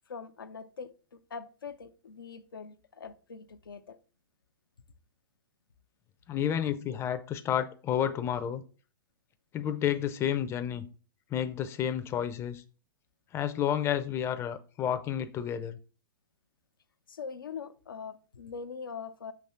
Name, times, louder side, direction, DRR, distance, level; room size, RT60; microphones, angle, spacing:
voice 1, 0.1-4.0 6.6-6.8 17.1-19.3, left 5 dB, 80° left, 0.6 m, -43 dB
voice 2, 6.3-8.6 9.5-10.9 11.3-12.6 13.3-15.8, left 9 dB, 25° left, 0.5 m, -30 dB
5.9 x 3.0 x 5.6 m
hypercardioid pair, 110°, 11 cm